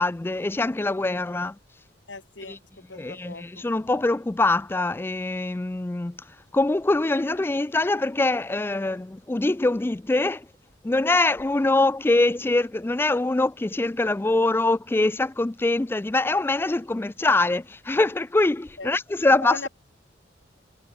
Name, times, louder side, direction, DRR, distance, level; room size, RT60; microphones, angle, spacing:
voice 1, 0.0-1.5 2.5-2.6 2.9-10.4 10.8-19.7, left 2 dB, 10° left, 0.3 m, -24 dB
voice 2, 2.1-3.8 18.8-18.9 19.4-19.7, left 3 dB, 75° left, 2.7 m, -38 dB
head